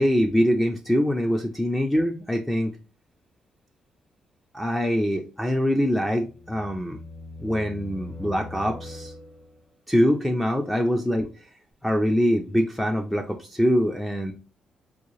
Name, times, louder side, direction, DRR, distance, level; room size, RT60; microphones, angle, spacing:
voice 1, 0.0-2.7 4.5-7.0 7.4-9.1 9.9-11.5 11.8-14.3, equal, 5° left, 3 dB, 0.3 m, -24 dB
sound 1, 5.9-9.7, left 2 dB, 45° left, 0.9 m, -41 dB
3.6 x 2.3 x 3.1 m, 0.33 s
cardioid pair, 145°, 2 cm